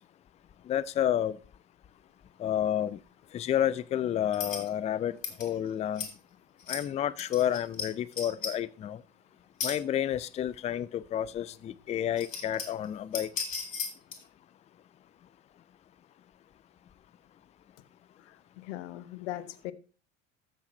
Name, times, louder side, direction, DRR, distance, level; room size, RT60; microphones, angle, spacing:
voice 1, 0.7-1.4 2.4-3.0 3.3-6.1 6.7-9.0 9.6-13.3, left 10 dB, 20° left, 0.4 m, -30 dB
sound 1, 4.3-4.7 5.2-5.5 6.0-6.1 6.6-6.8 7.2-8.5 9.6-9.8 10.2-10.3 11.5-11.6 12.0-12.9 13.1-14.2, left 5 dB, 80° left, 1.9 m, -35 dB
voice 2, 18.2-19.7, left 14 dB, 65° left, 0.9 m, -40 dB
14.0 x 6.0 x 3.1 m
figure-of-eight pair, 65°, 38 cm